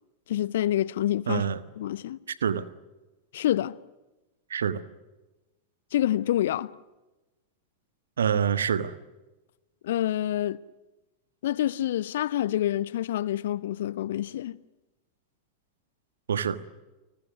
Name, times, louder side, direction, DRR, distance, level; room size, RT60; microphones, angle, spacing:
voice 1, 0.3-1.4 1.8-2.2 3.3-3.8 5.9-6.7 9.8-10.6 11.4-14.6, left 12 dB, 60° left, 0.9 m, -27 dB
voice 2, 1.3-1.6 2.3-2.6 4.5-4.8 8.2-9.0 16.3-16.6, right 7 dB, 65° right, 1.5 m, -26 dB
30.0 x 20.0 x 9.0 m
figure-of-eight pair, 90°, 0 cm